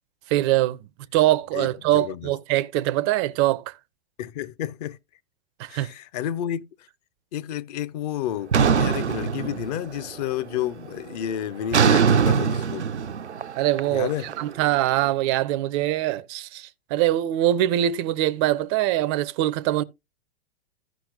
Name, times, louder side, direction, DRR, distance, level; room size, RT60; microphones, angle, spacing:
voice 1, 0.3-0.8 1.1-3.7 5.6-5.9 13.6-19.8, right 14 dB, 25° right, 0.4 m, -23 dB
voice 2, 1.5-2.3 4.2-5.0 5.7-6.6 7.3-12.9 13.9-14.3, left 11 dB, 40° left, 0.6 m, -31 dB
sound 1, 8.5-10.1 10.4-10.8 11.7-14.8, right 6 dB, 90° right, 0.5 m, -22 dB
15.0 x 5.6 x 2.6 m
figure-of-eight pair, 100°, 33 cm